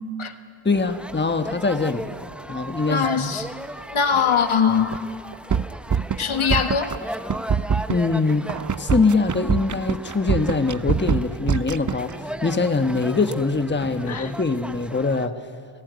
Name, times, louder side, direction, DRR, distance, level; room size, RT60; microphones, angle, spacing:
voice 1, 0.6-2.1 2.5-3.3 7.9-8.5 8.8-15.4, left 3 dB, 20° left, 1.2 m, -23 dB
sound 1, 0.7-15.3, equal, ahead, 0.8 m, -36 dB
voice 2, 2.9-3.5 3.9-5.1 6.2-7.0 14.1-14.3, left 6 dB, 75° left, 1.6 m, -22 dB
sound 2, 4.9-5.0 5.3-6.2 6.5-7.0 7.3-12.1, right 7 dB, 40° right, 0.6 m, -23 dB
29.0 x 16.0 x 9.5 m
wide cardioid pair, 90°, 49 cm